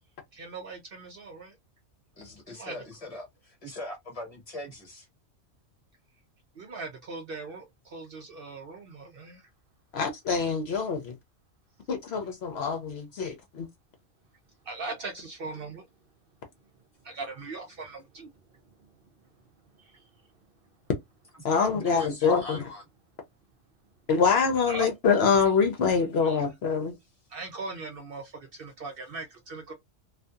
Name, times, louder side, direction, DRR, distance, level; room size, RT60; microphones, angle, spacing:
voice 1, 0.3-1.5 2.5-2.7 6.6-7.7 7.9-9.4 14.7-15.8 17.0-18.3 24.7-24.9 26.2-26.4 27.3-29.7, right 3 dB, 60° right, 0.7 m, -39 dB
voice 2, 2.2-5.1 21.7-22.8, left 1 dB, 30° left, 1.0 m, -40 dB
voice 3, 9.9-11.1 11.9-13.7 21.4-22.6 24.1-27.0, left 5 dB, 65° left, 0.8 m, -25 dB
2.6 x 2.4 x 2.2 m
omnidirectional pair, 1.3 m